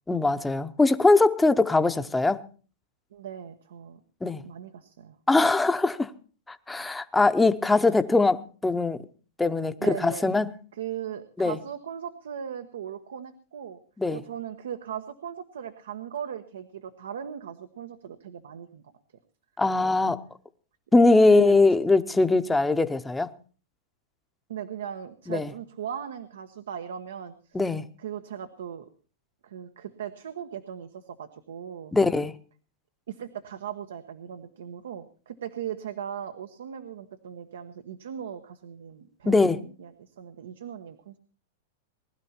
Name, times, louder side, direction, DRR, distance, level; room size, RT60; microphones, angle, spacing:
voice 1, 0.1-2.4 4.2-4.4 5.3-6.1 6.5-9.0 9.4-10.5 11.4-11.6 14.0-14.2 19.6-20.2 20.9-23.3 25.3-25.5 27.5-27.8 31.9-32.3 39.3-39.6, left 3 dB, 5° left, 0.7 m, -21 dB
voice 2, 3.1-4.0 4.4-5.2 7.7-8.0 9.8-10.3 10.7-13.8 14.1-18.8 19.8-20.0 21.3-21.5 24.5-27.7 28.0-28.9 29.4-31.9 33.1-41.1, right 9 dB, 85° right, 1.2 m, -38 dB
20.0 x 12.0 x 4.4 m
supercardioid pair, 150°, 0 cm